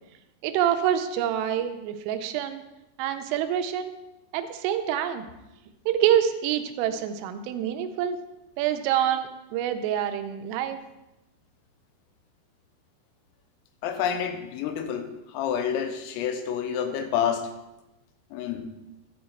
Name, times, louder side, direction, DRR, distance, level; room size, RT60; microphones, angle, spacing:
voice 1, 0.4-2.6 3.0-3.9 4.3-5.2 5.9-8.2 8.6-10.8, right 10 dB, 90° right, 8 dB, 3.2 m, -26 dB
voice 2, 13.8-17.5 18.3-18.7, left 8 dB, 90° left, 7 dB, 3.6 m, -28 dB
11.5 x 6.5 x 4.4 m, 0.96 s
omnidirectional pair, 5.8 m